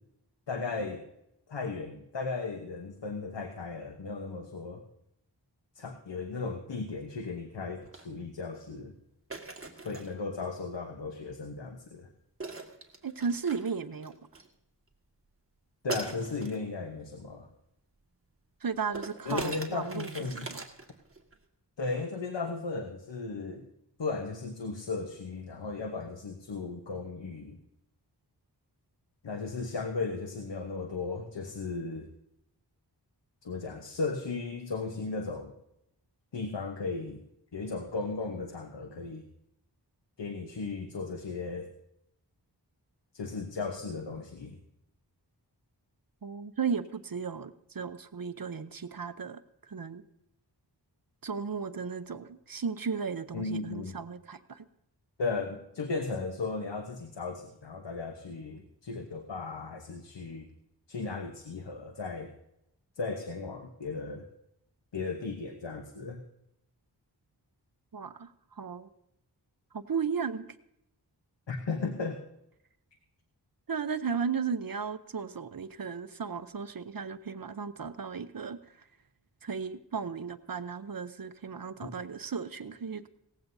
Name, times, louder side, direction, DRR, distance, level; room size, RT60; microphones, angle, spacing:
voice 1, 0.5-1.0 1.5-4.8 5.7-8.9 9.8-12.1 15.8-17.5 19.2-20.5 21.8-23.7 24.0-27.6 29.2-32.1 33.4-35.5 36.3-37.2 37.5-39.2 40.2-41.7 43.1-44.6 53.3-54.0 55.2-60.5 60.9-62.3 63.0-64.3 64.9-66.2 71.5-72.2, left 4 dB, 85° left, 4 dB, 1.1 m, -36 dB
sound 1, 7.8-8.0 9.3-10.2 12.4-14.5 15.9-16.6 18.9-21.4, right 3 dB, 30° right, 1.8 m, -40 dB
voice 2, 13.0-14.1 18.6-20.6 46.2-49.4 49.7-50.0 51.2-54.7 67.9-68.9 69.7-70.5 73.7-78.6 79.4-83.1, right 6 dB, 55° right, 12 dB, 0.8 m, -35 dB
18.0 x 15.0 x 2.7 m, 0.82 s
wide cardioid pair, 70°, 42 cm